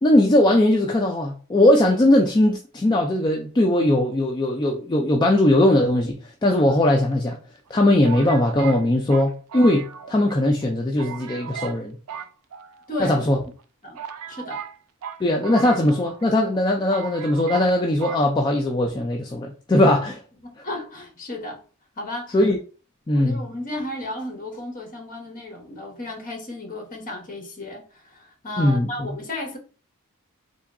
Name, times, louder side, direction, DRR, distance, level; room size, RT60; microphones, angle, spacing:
voice 1, 0.0-7.4 7.7-12.0 13.0-13.4 15.2-20.2 22.3-22.6 23.1-23.4 28.6-28.9, left 1 dB, 20° left, 0.4 m, -19 dB
sound 1, 6.6-7.3 8.0-10.3 10.6-10.7 11.0-11.8 12.1-13.1 13.6-13.7 14.0-16.3 16.5-16.6 16.9-17.7 18.0-18.2, right 7 dB, 70° right, 0.4 m, -37 dB
voice 2, 12.9-13.3 13.8-14.0 14.3-14.6 20.4-21.6 22.0-22.4 23.1-29.6, left 1 dB, 40° left, 1.1 m, -34 dB
3.7 x 2.3 x 3.6 m
head